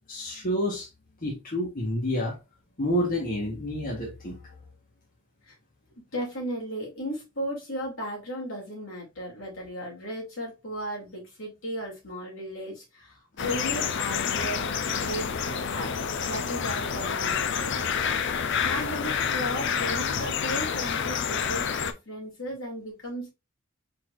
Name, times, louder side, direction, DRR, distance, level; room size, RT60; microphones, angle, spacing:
voice 1, 0.1-0.9 1.2-2.4 2.8-4.4, equal, 45° left, 1.3 m, -29 dB
voice 2, 6.0-14.6 15.0-16.0 16.3-18.4 18.6-23.3, equal, 80° left, 2.6 m, -36 dB
sound 1, 13.4-21.9, left 7 dB, 60° left, 0.5 m, -28 dB
4.7 x 4.1 x 2.5 m
head